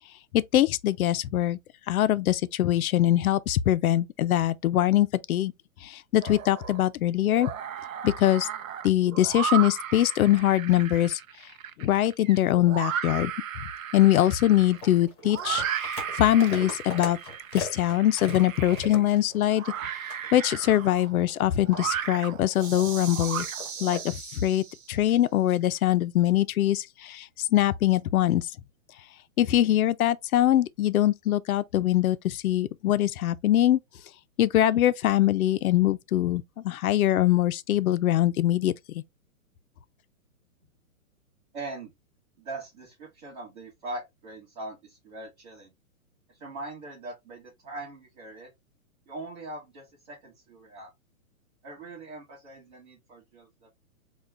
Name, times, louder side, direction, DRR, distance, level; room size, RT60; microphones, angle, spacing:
voice 1, 0.3-1.6 1.9-5.5 5.8-7.5 8.0-8.5 8.8-11.2 11.8-13.3 13.9-17.2 17.5-19.6 20.3-23.5 23.8-28.5 29.4-33.8 34.4-39.0, left 13 dB, 80° left, 0.6 m, -23 dB
sound 1, 6.2-6.9 7.2-24.0, right 9 dB, 70° right, 0.6 m, -35 dB
sound 2, 14.7-19.8 20.1-20.3 20.8-22.9 23.4-24.1, left 3 dB, 20° left, 1.0 m, -39 dB
sound 3, 22.5-25.1, right 6 dB, 85° right, 1.0 m, -39 dB
voice 2, 41.5-41.9 42.4-45.7 46.3-48.5 49.1-50.9 51.6-53.7, right 2 dB, 35° right, 1.4 m, -41 dB
3.6 x 2.4 x 3.2 m
hypercardioid pair, 175°, 42 cm